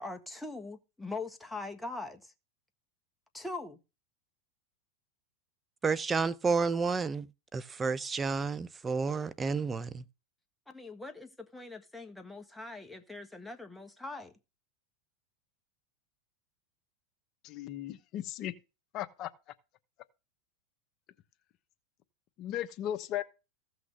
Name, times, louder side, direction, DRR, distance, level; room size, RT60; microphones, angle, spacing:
voice 1, 0.0-2.3 3.3-3.8 10.7-14.3, left 3 dB, 5° left, 1.5 m, -42 dB
voice 2, 5.8-7.3 7.5-10.0, right 4 dB, 20° right, 0.6 m, -30 dB
voice 3, 17.4-18.5 18.9-19.3 22.4-23.2, left 12 dB, 45° left, 1.0 m, -36 dB
15.5 x 6.1 x 3.3 m
hypercardioid pair, 115°, 0 cm